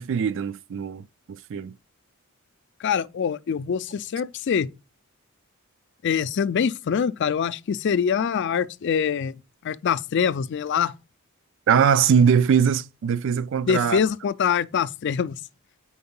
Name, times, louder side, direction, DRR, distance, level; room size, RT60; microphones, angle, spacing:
voice 1, 0.0-1.7 11.7-14.0, right 7 dB, 60° right, 0.3 m, -21 dB
voice 2, 2.8-4.7 6.0-9.3 9.6-10.9 13.7-15.4, left 7 dB, 55° left, 0.3 m, -24 dB
4.7 x 4.3 x 5.3 m
head